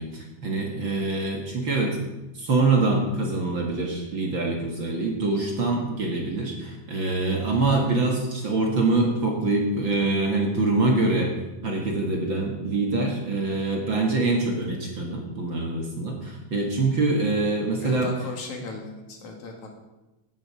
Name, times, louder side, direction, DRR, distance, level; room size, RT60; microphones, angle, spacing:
voice 1, 0.0-2.0 2.4-11.3 11.6-18.1, right 3 dB, 45° right, 0 dB, 2.2 m, -24 dB
voice 2, 17.8-19.7, left 3 dB, 70° left, 1 dB, 3.5 m, -37 dB
16.5 x 10.0 x 4.9 m, 1.0 s
omnidirectional pair, 3.5 m